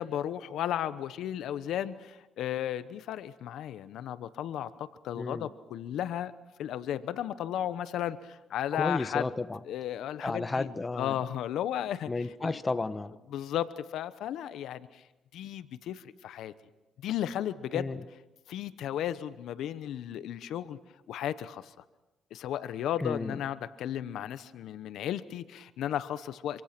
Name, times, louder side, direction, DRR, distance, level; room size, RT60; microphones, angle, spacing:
voice 1, 0.0-6.3 6.6-9.3 9.7-10.7 11.0-12.1 12.4-12.6 13.3-15.0 15.3-16.5 17.0-17.9 18.5-20.8 21.1-21.7 22.3-26.6, left 11 dB, 80° left, 14 dB, 1.0 m, -34 dB
voice 2, 5.1-5.5 8.7-9.6 10.2-11.2 12.1-13.2 17.7-18.0 23.0-23.4, left 3 dB, 25° left, 13 dB, 1.1 m, -33 dB
26.5 x 26.0 x 6.0 m, 1.0 s
cardioid pair, 90°, 0 cm